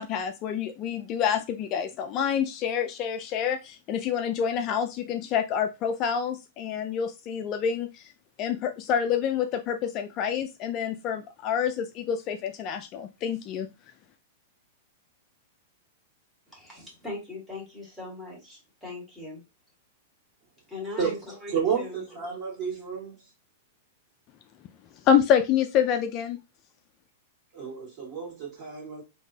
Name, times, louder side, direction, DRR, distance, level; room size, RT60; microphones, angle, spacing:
voice 1, 0.0-8.1 8.4-13.7 25.0-26.4, left 8 dB, 35° left, 0.3 m, -27 dB
voice 2, 16.5-19.4 20.7-22.0, left 3 dB, 5° right, 1.6 m, -40 dB
voice 3, 21.5-23.1 27.5-29.0, right 6 dB, 30° right, 2.0 m, -31 dB
3.6 x 2.8 x 2.7 m
hypercardioid pair, 145°, 0 cm